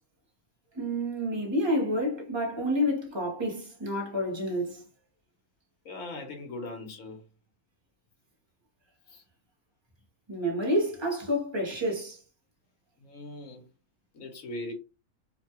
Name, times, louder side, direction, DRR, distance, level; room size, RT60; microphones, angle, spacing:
voice 1, 0.7-4.8 10.3-12.2, equal, 25° right, 0.7 m, -29 dB
voice 2, 5.8-7.3 9.1-9.2 13.0-13.6 14.1-14.7, left 2 dB, 70° left, 1.3 m, -40 dB
2.9 x 2.2 x 2.8 m
omnidirectional pair, 1.5 m